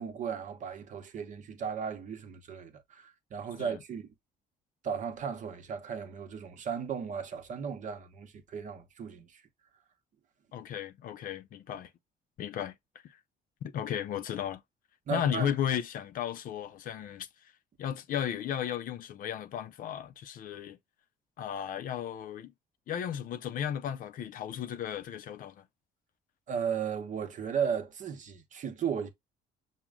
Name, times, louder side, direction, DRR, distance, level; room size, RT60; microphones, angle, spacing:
voice 1, 0.0-4.0 4.8-9.4 15.1-15.5 26.5-29.1, right 7 dB, 50° right, 0.8 m, -35 dB
voice 2, 10.5-11.9 12.4-12.8 13.0-13.2 13.6-14.6 15.1-17.3 17.8-20.8 21.4-22.5 22.9-25.6, left 9 dB, 55° left, 0.5 m, -34 dB
6.0 x 2.1 x 3.5 m
cardioid pair, 110°, 17 cm